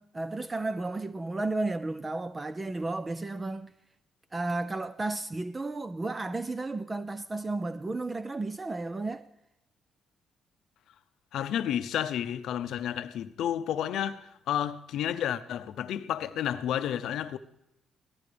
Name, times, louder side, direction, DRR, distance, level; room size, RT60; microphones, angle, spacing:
voice 1, 0.0-3.7 4.3-9.2, right 2 dB, 25° right, 0.4 m, -33 dB
voice 2, 11.3-17.4, left 10 dB, 80° left, 0.6 m, -31 dB
19.0 x 14.0 x 3.4 m
cardioid pair, 90°, 0 cm